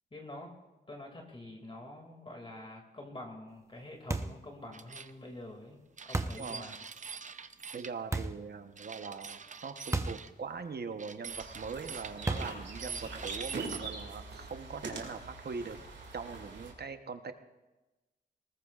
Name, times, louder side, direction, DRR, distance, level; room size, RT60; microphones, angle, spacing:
voice 1, 0.1-0.5 0.9-6.8, left 1 dB, 30° left, 1 dB, 2.4 m, -47 dB
sound 1, 4.1-4.5 6.1-6.5 8.1-8.5 9.9-10.3 10.6-10.7 12.3-12.7, right 2 dB, 15° right, 0.8 m, -33 dB
sound 2, 4.7-5.1 6.0-7.9 8.8-10.3 11.0-13.8, right 5 dB, 45° right, 0.6 m, -45 dB
voice 2, 6.4-6.7 7.7-15.8 16.1-17.3, right 5 dB, 60° right, 8 dB, 1.0 m, -41 dB
sound 3, 11.3-16.7, right 3 dB, 85° right, 2.4 m, -43 dB
19.5 x 19.5 x 2.5 m, 1.1 s
wide cardioid pair, 85°, 19 cm